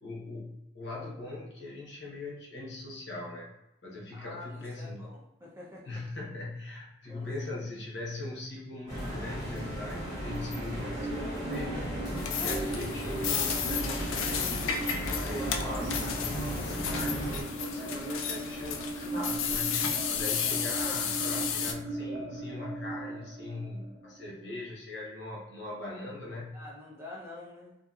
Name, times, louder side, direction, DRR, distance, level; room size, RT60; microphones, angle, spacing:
voice 1, 0.0-3.5 3.8-5.1 5.8-11.9 12.4-14.6 15.0-19.9 20.1-26.5, left 2 dB, 60° left, -4 dB, 0.8 m, -40 dB
voice 2, 4.1-5.9 7.1-7.3 20.5-20.9 26.5-27.8, left 2 dB, 15° right, -5 dB, 0.5 m, -47 dB
sound 1, 8.9-17.4, equal, 40° left, 1.0 m, -36 dB
sound 2, 9.5-24.4, right 2 dB, 70° right, 0.4 m, -39 dB
sound 3, 12.2-21.7, left 7 dB, 85° left, 0.3 m, -33 dB
2.7 x 2.5 x 2.3 m, 0.92 s
head